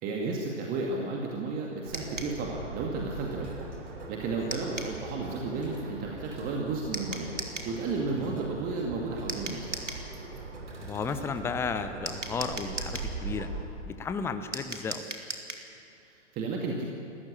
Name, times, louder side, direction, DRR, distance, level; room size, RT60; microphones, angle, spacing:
voice 1, 0.0-3.6 4.1-7.3 7.7-9.8 16.1-16.9, right 3 dB, 25° right, 0 dB, 2.3 m, -33 dB
sound 1, 1.9-13.6, right 3 dB, 55° right, 4.4 m, -41 dB
sound 2, 1.9-2.4 4.5-5.0 6.9-7.7 9.3-10.1 12.1-13.1 14.5-15.7, right 2 dB, 85° right, 2.7 m, -37 dB
sound 3, 3.3-11.9, right 2 dB, 70° right, 5.0 m, -53 dB
voice 2, 8.1-8.4 10.8-13.5 13.8-15.1, left 5 dB, 5° left, 9 dB, 0.7 m, -34 dB
29.5 x 14.5 x 8.6 m, 2.6 s
figure-of-eight pair, 115°, 36 cm